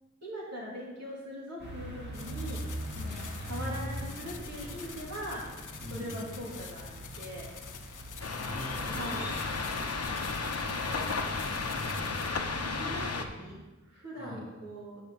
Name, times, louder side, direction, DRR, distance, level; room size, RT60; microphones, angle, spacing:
voice 1, 0.2-2.6 3.4-5.4 5.9-6.9 7.2-7.5 8.9-9.3 10.7-11.2 12.4-13.1 13.4-13.6 13.9-15.0, equal, 55° right, -5 dB, 3.3 m, -41 dB
sound 1, 1.6-12.2, equal, 35° right, 2.2 m, -42 dB
sound 2, 2.1-12.3, left 6 dB, 85° left, 0.7 m, -48 dB
voice 2, 2.9-3.7 5.8-6.3 8.3-9.1 11.3-12.2 14.1-14.5, equal, 5° right, -7 dB, 3.1 m, -44 dB
sound 3, 8.2-13.2, left 4 dB, 55° left, 0.8 m, -33 dB
8.0 x 5.3 x 5.6 m, 1.2 s
wide cardioid pair, 65°, 30 cm